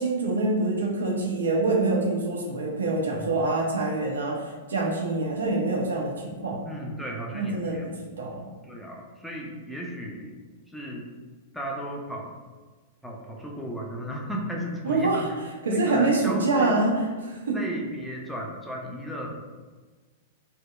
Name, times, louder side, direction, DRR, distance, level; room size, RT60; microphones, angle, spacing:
voice 1, 0.0-6.6 7.3-7.8 8.2-8.4 14.8-15.3 15.6-17.6, right 2 dB, 70° right, 0 dB, 0.5 m, -25 dB
voice 2, 6.7-7.9 8.6-10.3 10.7-11.2 11.5-12.3 13.0-15.2 15.7-16.8 17.5-19.4, equal, ahead, -2 dB, 0.4 m, -35 dB
2.8 x 2.1 x 2.2 m, 1.4 s
figure-of-eight pair, 100°, 0 cm